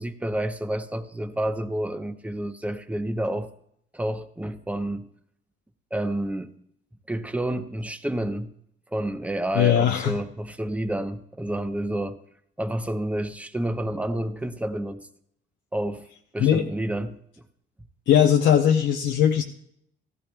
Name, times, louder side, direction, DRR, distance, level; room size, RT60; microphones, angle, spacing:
voice 1, 0.0-3.5 3.9-5.1 5.9-6.5 7.1-8.5 8.9-12.2 12.6-15.1 15.7-16.1 16.3-17.2, right 1 dB, 5° right, 9 dB, 0.8 m, -29 dB
voice 2, 9.5-10.2 16.4-16.7 18.1-19.4, left 9 dB, 70° left, 2 dB, 0.8 m, -19 dB
15.0 x 14.5 x 2.3 m, 0.70 s
cardioid pair, 90°, 20 cm